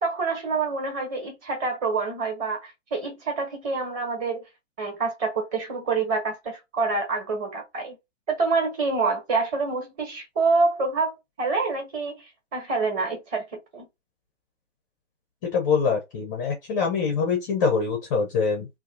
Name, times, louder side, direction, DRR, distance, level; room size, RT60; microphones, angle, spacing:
voice 1, 0.0-4.4 4.8-8.0 8.3-12.2 12.5-13.9, right 4 dB, 20° right, 1.3 m, -27 dB
voice 2, 15.4-18.7, left 5 dB, 15° left, 0.5 m, -24 dB
2.8 x 2.4 x 3.5 m
figure-of-eight pair, 130°, 37 cm